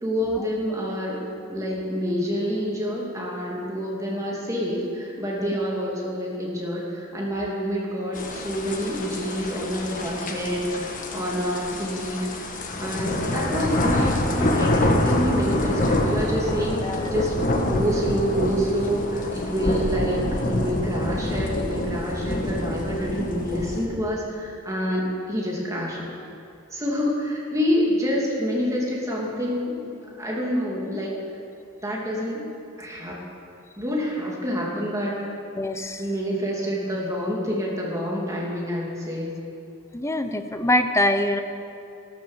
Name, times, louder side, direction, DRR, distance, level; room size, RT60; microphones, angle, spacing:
voice 1, 0.0-1.2 1.5-12.5 12.8-26.1 26.7-29.8 30.2-31.2 31.8-32.4 32.8-33.2 33.8-35.3 36.0-39.3, equal, 15° right, -3 dB, 2.7 m, -27 dB
sound 1, 8.1-23.9, left 1 dB, 40° left, 1.4 m, -26 dB
voice 2, 35.6-36.0 39.9-41.4, left 1 dB, 15° left, 7 dB, 0.8 m, -24 dB
15.5 x 13.0 x 7.4 m, 2.5 s
head